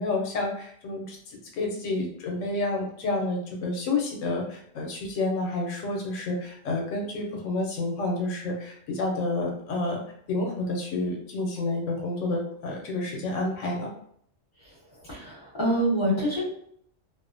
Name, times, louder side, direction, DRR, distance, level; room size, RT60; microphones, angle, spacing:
voice 1, 0.0-10.0 10.3-13.9, left 2 dB, 85° left, 0 dB, 0.9 m, -29 dB
voice 2, 14.6-16.4, right 1 dB, 20° left, -6 dB, 1.0 m, -27 dB
2.4 x 2.1 x 2.5 m, 0.66 s
omnidirectional pair, 1.3 m